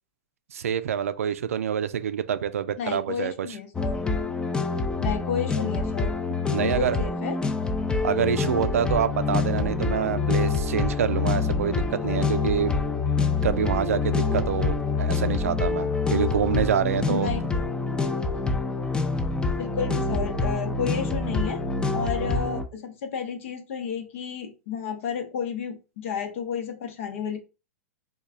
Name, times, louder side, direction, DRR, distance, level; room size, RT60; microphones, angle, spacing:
voice 1, 0.5-3.5 6.5-7.0 8.0-12.7 13.4-17.3, right 8 dB, 80° right, 0.4 m, -26 dB
voice 2, 2.8-4.1 5.0-6.2 6.5-7.4 17.1-17.6 19.6-21.6 21.9-27.4, left 7 dB, 65° left, 0.9 m, -31 dB
sound 1, 3.7-22.6, left 4 dB, 10° left, 0.4 m, -26 dB
3.1 x 2.3 x 3.6 m
hypercardioid pair, 110°, 8 cm